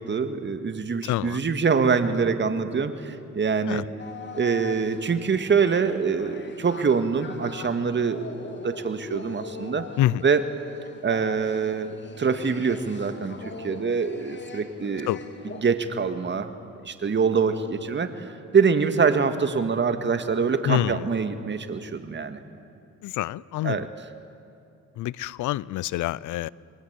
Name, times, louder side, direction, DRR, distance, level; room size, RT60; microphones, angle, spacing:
voice 1, 0.0-3.9 4.3-9.9 10.2-10.5 11.0-15.1 15.6-16.5 16.8-22.4 23.6-23.9, right 5 dB, 40° right, 2.1 m, -25 dB
voice 2, 1.0-1.4 3.7-3.8 10.0-10.2 15.1-15.2 20.6-21.0 23.0-23.9 25.0-26.5, left 14 dB, 80° left, 0.6 m, -26 dB
sound 1, 4.0-15.6, left 4 dB, 35° left, 3.0 m, -41 dB
28.0 x 22.5 x 8.4 m
cardioid pair, 90°, 30 cm